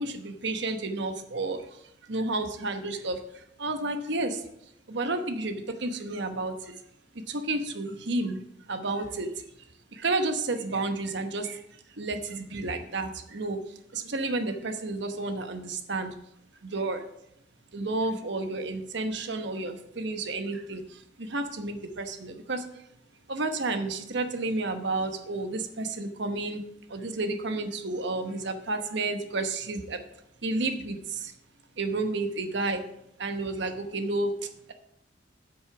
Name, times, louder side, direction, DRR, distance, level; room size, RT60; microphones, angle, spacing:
voice 1, 0.0-1.6 2.1-3.2 3.6-4.4 4.9-6.7 7.3-8.4 8.7-9.3 9.9-11.6 12.0-13.6 13.9-16.1 16.6-17.0 17.7-20.8 21.2-22.6 23.3-26.6 26.9-30.0 30.4-31.0 31.8-32.8 33.2-34.3, right 2 dB, 65° right, 7 dB, 1.1 m, -31 dB
8.0 x 6.3 x 5.9 m, 0.80 s
head